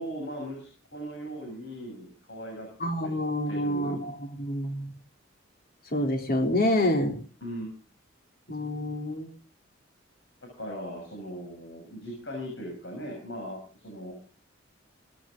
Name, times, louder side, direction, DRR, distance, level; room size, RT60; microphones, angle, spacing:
voice 1, 0.0-2.7 3.0-3.1 3.5-4.0 7.4-7.7 10.4-14.2, equal, 65° left, 1 dB, 6.7 m, -38 dB
voice 2, 2.8-4.9 5.9-7.2 8.5-9.3, left 1 dB, 50° left, 3 dB, 3.5 m, -27 dB
18.0 x 15.0 x 3.8 m, 0.38 s
head